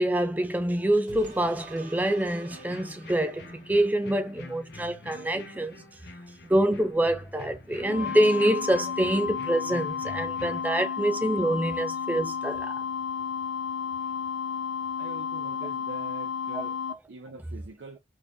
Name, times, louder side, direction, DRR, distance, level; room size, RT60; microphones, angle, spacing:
voice 1, 0.0-5.8 6.4-12.8 16.5-16.6 16.9-17.0, right 1 dB, 10° right, 0.4 m, -26 dB
sound 1, 1.1-4.0 4.5-4.6, right 2 dB, 40° right, 1.8 m, -48 dB
sound 2, 2.5-10.6, left 2 dB, 55° left, 0.7 m, -46 dB
sound 3, 7.9-16.9, left 7 dB, 90° left, 0.5 m, -32 dB
voice 2, 15.0-16.8 17.1-18.0, right 3 dB, 85° right, 0.7 m, -44 dB
3.5 x 3.1 x 2.6 m
head